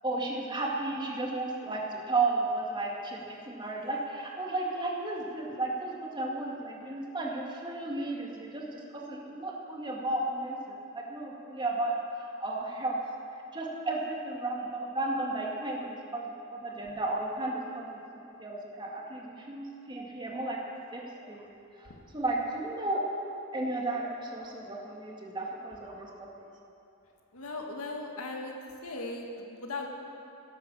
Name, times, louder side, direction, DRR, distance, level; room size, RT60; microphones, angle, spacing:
voice 1, 0.0-12.0 12.4-13.0 13.5-17.9 18.3-21.5 21.8-23.0 23.5-26.5, right 2 dB, 20° right, -2 dB, 2.1 m, -34 dB
voice 2, 27.3-28.5 28.8-29.9, left 3 dB, 80° left, 1 dB, 2.0 m, -38 dB
16.5 x 11.5 x 7.1 m, 2.7 s
head